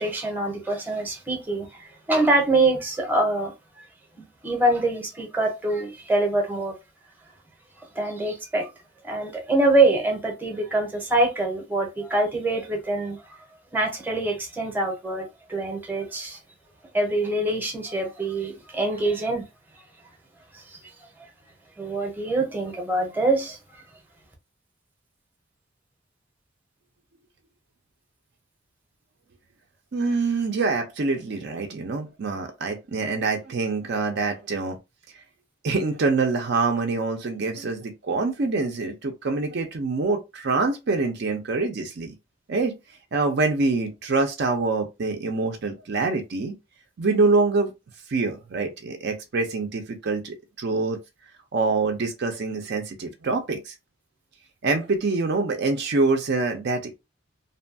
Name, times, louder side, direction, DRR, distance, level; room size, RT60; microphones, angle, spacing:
voice 1, 0.0-3.5 4.2-6.7 8.0-8.7 9.0-13.4 13.7-16.4 16.9-19.4 20.5-20.8 21.8-23.8, right 2 dB, 10° right, 0.7 m, -25 dB
voice 2, 29.9-34.8 35.6-42.1 42.5-42.7 43.1-46.5 47.0-47.7 48.1-51.0 51.5-53.7 54.6-57.0, right 3 dB, 55° right, 0.4 m, -25 dB
2.7 x 2.2 x 2.6 m
head